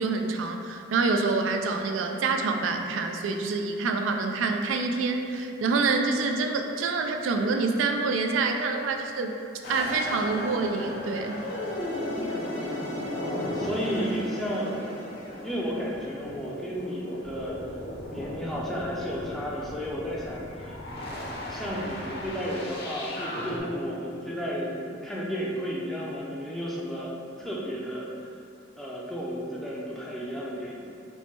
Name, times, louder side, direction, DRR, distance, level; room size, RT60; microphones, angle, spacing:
voice 1, 0.0-9.3 9.7-11.4, right 4 dB, 90° right, 4 dB, 0.3 m, -26 dB
sound 1, 9.6-23.6, left 1 dB, 55° left, 0.6 m, -36 dB
sound 2, 11.2-16.4, left 3 dB, 80° left, 1.1 m, -43 dB
voice 2, 13.1-14.9 15.4-17.6 18.1-20.8 21.5-27.1 27.4-28.3 28.8-30.8, equal, ahead, -5 dB, 0.4 m, -33 dB
sound 3, 17.2-22.3, equal, 35° right, 0.7 m, -44 dB
4.5 x 2.1 x 4.2 m, 2.5 s
head